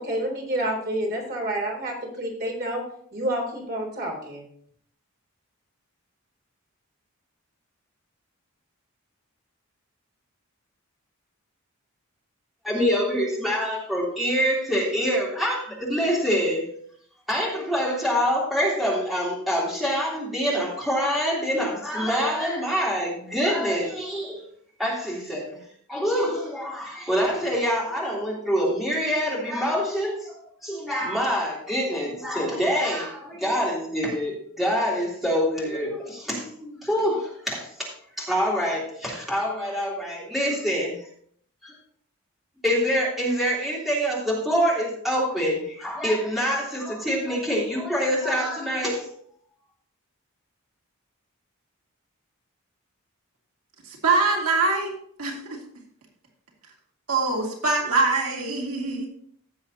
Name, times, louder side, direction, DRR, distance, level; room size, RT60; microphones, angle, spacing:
voice 1, 0.0-2.8 3.1-4.4, right 1 dB, 45° right, -1 dB, 3.5 m, -29 dB
voice 2, 12.6-16.7 17.3-24.4 24.8-25.6 25.9-30.3 30.6-37.9 38.2-41.0 41.6-41.7 42.6-49.1, equal, ahead, -6 dB, 3.2 m, -25 dB
voice 3, 53.8-54.9 55.2-55.6 57.1-59.1, right 3 dB, 85° right, 0 dB, 2.2 m, -23 dB
16.0 x 6.9 x 2.8 m, 0.64 s
head